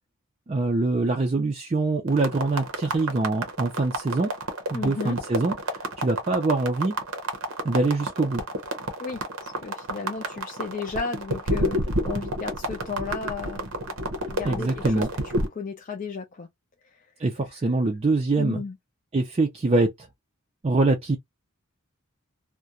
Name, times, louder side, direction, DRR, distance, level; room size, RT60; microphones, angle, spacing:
voice 1, 0.5-4.3 4.7-7.0 7.6-8.4 14.4-15.1 17.2-18.6 19.1-20.1 20.6-21.2, right 2 dB, 30° right, 0.4 m, -24 dB
sound 1, 2.1-15.5, right 1 dB, 70° right, 0.7 m, -30 dB
voice 2, 4.7-5.2 9.0-13.7 14.3-15.1 15.5-16.5 18.4-18.8, left 4 dB, 35° left, 0.4 m, -34 dB
2.3 x 2.1 x 2.8 m
head